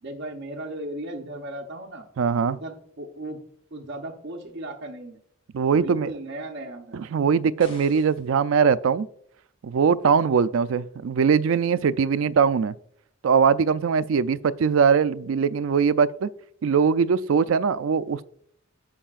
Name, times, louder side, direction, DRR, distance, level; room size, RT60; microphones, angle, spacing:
voice 1, 0.0-2.1 2.4-3.4 3.7-5.2 5.7-7.0, right 1 dB, 60° right, 0.8 m, -36 dB
voice 2, 2.2-2.6 5.5-6.1 6.9-9.1 9.6-12.7 13.2-16.3 16.6-18.2, right 6 dB, 80° right, 0.4 m, -21 dB
sound 1, 7.6-8.3, left 2 dB, 30° left, 1.9 m, -47 dB
15.5 x 5.4 x 2.4 m
head